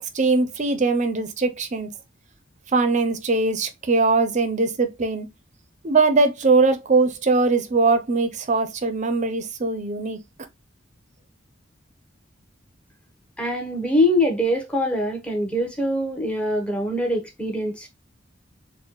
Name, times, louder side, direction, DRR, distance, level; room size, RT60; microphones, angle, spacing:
voice 1, 0.0-1.9 2.7-5.3 5.8-10.2, right 3 dB, 40° right, 0.6 m, -21 dB
voice 2, 13.4-17.9, left 1 dB, 5° left, 0.9 m, -23 dB
4.1 x 2.2 x 3.0 m
head